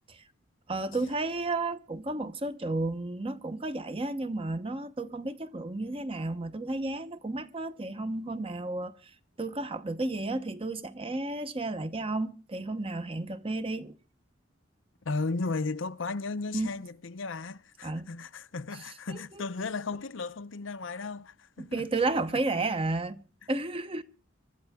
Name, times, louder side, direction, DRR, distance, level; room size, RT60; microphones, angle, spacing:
voice 1, 0.7-9.1 9.4-13.9 16.5-16.7 17.8-18.1 19.1-19.2 21.6-24.0, right 2 dB, 25° right, 0.9 m, -32 dB
voice 2, 15.0-21.9, left 3 dB, 75° left, 0.7 m, -35 dB
24.5 x 12.5 x 3.6 m
head